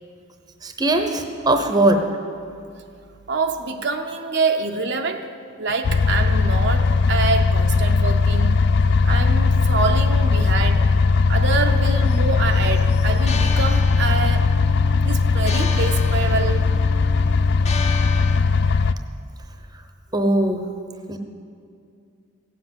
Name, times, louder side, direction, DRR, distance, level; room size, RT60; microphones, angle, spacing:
voice 1, 0.6-2.0 20.1-20.6 21.1-21.2, right 1 dB, 20° right, 5 dB, 0.8 m, -20 dB
voice 2, 3.3-5.3 5.6-8.6 9.0-10.9 11.3-14.5 15.0-16.7, right 4 dB, 55° right, 4 dB, 0.7 m, -26 dB
sound 1, 5.8-18.9, left 4 dB, 55° left, 0.4 m, -18 dB
sound 2, 12.0-18.4, left 5 dB, 30° left, 0.9 m, -34 dB
16.5 x 7.6 x 8.0 m, 2.4 s
head